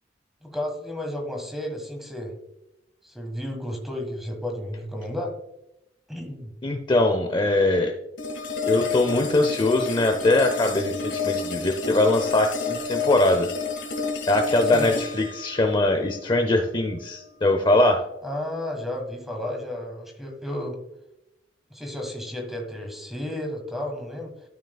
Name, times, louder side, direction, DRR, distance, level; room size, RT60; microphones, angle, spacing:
voice 1, 0.4-2.3 3.0-5.3 6.1-6.5 14.7-14.9 18.2-20.8 21.7-24.3, left 1 dB, ahead, 3 dB, 1.5 m, -32 dB
voice 2, 6.6-7.9 8.7-13.5 14.3-18.0, left 2 dB, 25° left, 4 dB, 0.6 m, -22 dB
sound 1, 8.2-17.2, left 5 dB, 75° left, 1.6 m, -30 dB
13.0 x 5.9 x 2.3 m, 0.89 s
head